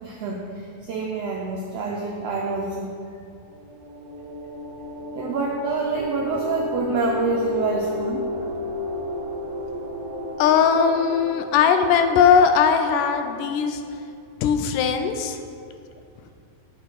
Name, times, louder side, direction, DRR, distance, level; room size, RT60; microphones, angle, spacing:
voice 1, 0.0-2.9 5.1-8.3, right 4 dB, 85° right, -1 dB, 1.4 m, -27 dB
sound 1, 3.5-13.7, left 2 dB, 65° right, 2.0 m, -32 dB
voice 2, 10.4-13.8 14.4-15.4, left 7 dB, 80° left, 7 dB, 2.1 m, -19 dB
9.0 x 6.3 x 4.7 m, 2.4 s
omnidirectional pair, 3.8 m